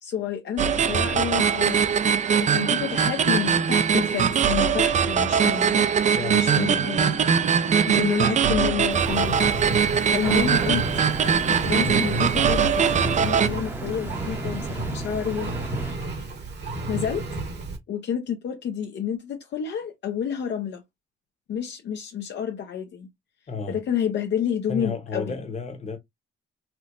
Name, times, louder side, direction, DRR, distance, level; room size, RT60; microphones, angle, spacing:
voice 1, 0.0-1.9 2.4-5.8 6.3-7.2 7.6-9.6 9.8-10.8 11.2-16.3 16.9-17.3 17.9-20.8 21.5-23.1 23.7-25.4, left 8 dB, 60° left, 0.6 m, -30 dB
sound 1, 0.6-13.5, right 7 dB, 35° right, 0.4 m, -21 dB
voice 2, 6.2-6.9 23.5-23.8 24.7-26.0, left 4 dB, 35° left, 1.0 m, -32 dB
Engine, 8.9-17.8, right 2 dB, 60° right, 1.4 m, -32 dB
sound 2, 10.2-15.9, right 2 dB, 10° right, 0.7 m, -36 dB
4.4 x 2.0 x 2.5 m
cardioid pair, 90°, 20 cm